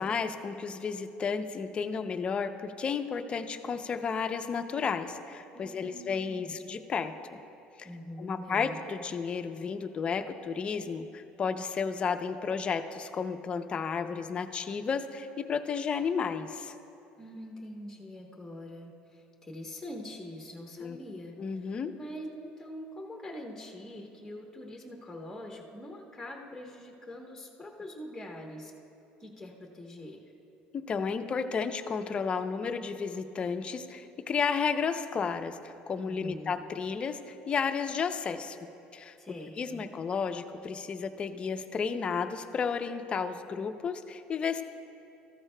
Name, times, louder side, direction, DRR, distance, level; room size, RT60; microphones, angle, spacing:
voice 1, 0.0-7.4 7.8-7.9 8.2-16.7 20.8-21.0 21.4-21.9 30.7-38.6 38.9-39.1 39.6-44.6, left 5 dB, 30° left, 8 dB, 0.5 m, -32 dB
voice 2, 5.5-6.5 7.8-8.8 17.2-28.7 29.2-30.2 36.0-36.6 39.2-39.9, left 1 dB, 5° left, 0 dB, 1.0 m, -44 dB
14.0 x 13.0 x 2.2 m, 2.7 s
cardioid pair, 120°, 3 cm